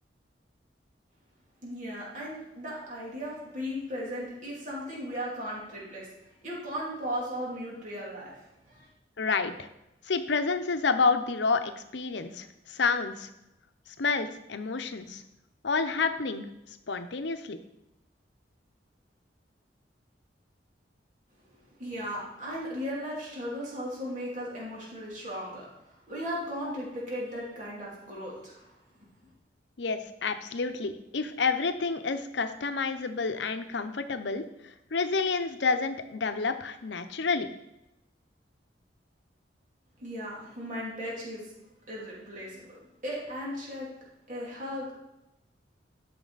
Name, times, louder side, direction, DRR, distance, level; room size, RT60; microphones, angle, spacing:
voice 1, 1.6-8.9 21.4-21.5 21.8-29.1 40.0-41.5 41.9-42.8 43.0-43.9 44.3-44.9, equal, 45° right, -5 dB, 2.9 m, -37 dB
voice 2, 9.2-9.6 10.1-13.3 14.0-15.2 15.6-16.5 16.9-17.6 29.8-34.4 34.9-37.5, left 4 dB, 75° left, 9 dB, 0.7 m, -29 dB
12.0 x 6.0 x 4.0 m, 0.90 s
head